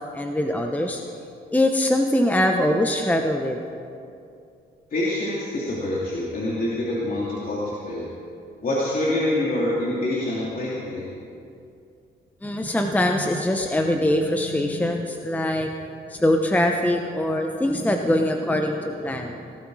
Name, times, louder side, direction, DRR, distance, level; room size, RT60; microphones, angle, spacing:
voice 1, 0.1-1.0 1.5-3.6 12.4-15.7 16.1-19.3, left 1 dB, 10° left, 3 dB, 0.9 m, -22 dB
voice 2, 4.9-8.1 8.6-11.1, left 1 dB, 45° left, -6 dB, 2.8 m, -26 dB
18.0 x 12.5 x 4.8 m, 2.5 s
cardioid pair, 90°, 20 cm